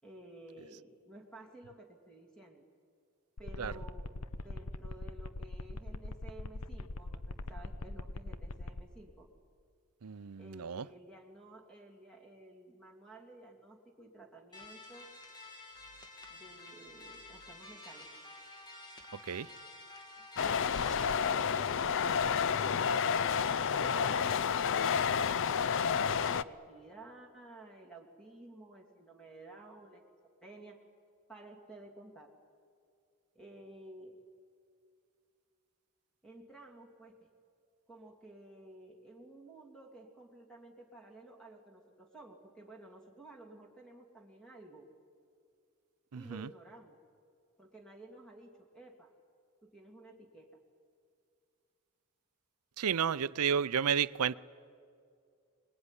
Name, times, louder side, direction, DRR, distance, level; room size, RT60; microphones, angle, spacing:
voice 1, 0.0-2.6 3.4-4.1 4.4-9.3 10.4-15.1 16.3-18.1 20.2-30.0 30.4-30.8 31.3-32.3 33.3-34.2 36.2-37.3 37.9-44.9 46.1-47.0 47.6-49.1 49.6-50.5 53.4-53.6, right 2 dB, 5° left, 2.6 m, -53 dB
sound 1, 3.4-8.8, left 2 dB, 80° left, 0.9 m, -41 dB
voice 2, 10.0-10.9 19.3-19.5 46.1-46.5 52.8-54.4, right 7 dB, 80° right, 0.6 m, -32 dB
sound 2, 14.5-21.1, left 2 dB, 20° left, 2.1 m, -51 dB
sound 3, 20.4-26.4, left 7 dB, 60° left, 0.5 m, -30 dB
25.5 x 20.5 x 9.8 m
head